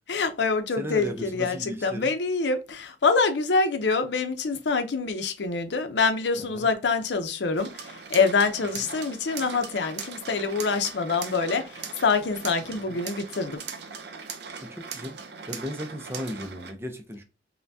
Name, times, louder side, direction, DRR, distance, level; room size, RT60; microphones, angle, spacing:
voice 1, 0.1-7.7 8.1-11.6 12.0-13.6, left 4 dB, 80° left, 0.6 m, -25 dB
voice 2, 0.8-2.1 6.4-6.7 8.8-8.9 12.7-13.0 14.6-15.2 15.5-17.2, equal, 15° right, 0.5 m, -36 dB
sound 1, 7.6-16.7, right 6 dB, 70° right, 0.6 m, -40 dB
5.6 x 2.2 x 2.6 m
head